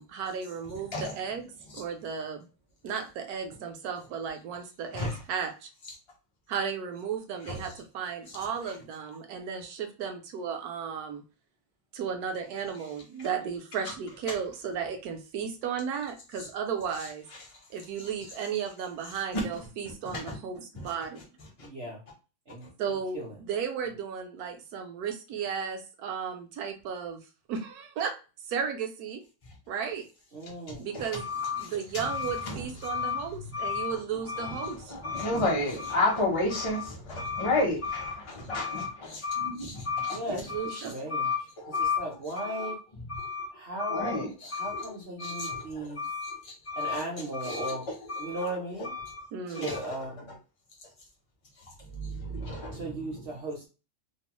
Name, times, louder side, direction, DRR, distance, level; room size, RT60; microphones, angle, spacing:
voice 1, 0.0-2.5 2.8-5.7 6.5-11.2 11.9-17.3 17.7-21.2 22.8-27.2 27.5-28.2 28.5-29.2 29.7-30.1 30.8-31.2 31.6-34.9 40.2-40.9 49.3-49.7, right 7 dB, 70° right, 1.0 m, -34 dB
voice 2, 19.8-20.4 20.8-20.9 30.7-30.8 31.1-33.2 33.5-34.0 34.3-43.5 43.8-49.2 49.5-50.4 51.9-53.4, left 3 dB, 40° left, 0.4 m, -32 dB
voice 3, 21.6-22.0 22.5-22.6 23.1-23.3 30.3-30.8 40.1-40.4 40.7-41.3 42.0-42.8 43.6-44.1 44.6-46.0 46.8-47.8 48.2-48.9 49.6-50.3 52.7-53.7, right 1 dB, 50° right, 0.7 m, -36 dB
3.0 x 2.0 x 2.9 m
omnidirectional pair, 1.9 m